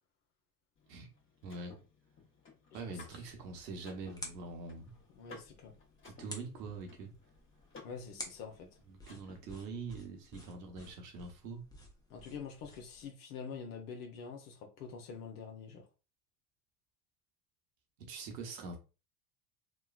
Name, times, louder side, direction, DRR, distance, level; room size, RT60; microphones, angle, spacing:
Car / Mechanisms, 0.8-9.7, left 4 dB, 25° left, 1.0 m, -58 dB
voice 1, 1.4-1.8 2.7-5.0 6.0-7.1 8.9-11.6 18.1-18.8, right 4 dB, 85° right, 1.0 m, -44 dB
voice 2, 2.7-3.2 5.1-5.8 7.8-8.7 12.1-15.8, left 6 dB, 70° left, 0.8 m, -46 dB
sound 1, 3.1-13.1, left 1 dB, 10° left, 0.7 m, -53 dB
3.0 x 2.2 x 2.3 m
hypercardioid pair, 80°, 48 cm